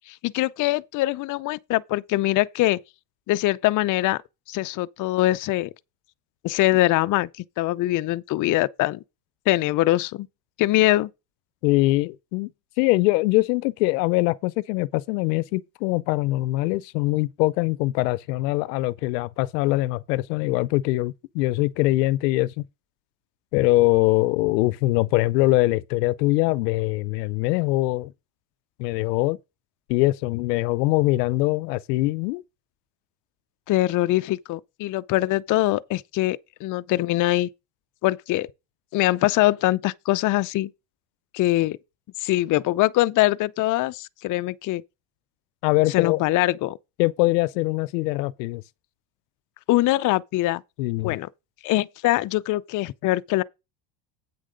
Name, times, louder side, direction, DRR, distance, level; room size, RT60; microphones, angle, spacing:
voice 1, 0.1-2.8 3.3-4.2 4.5-5.7 6.4-7.3 7.6-9.0 9.5-10.3 10.6-11.1 33.7-37.5 38.0-38.5 38.9-40.7 41.3-41.8 42.2-44.8 45.9-46.8 49.7-50.6 51.0-51.3 51.6-53.4, left 17 dB, 40° left, 0.6 m, -23 dB
voice 2, 11.6-12.5 12.8-22.6 23.5-28.1 28.8-29.4 29.9-32.4 45.6-46.2 47.0-48.6 50.8-51.2, left 20 dB, 85° left, 0.7 m, -23 dB
8.5 x 6.3 x 5.0 m
supercardioid pair, 110°, 48 cm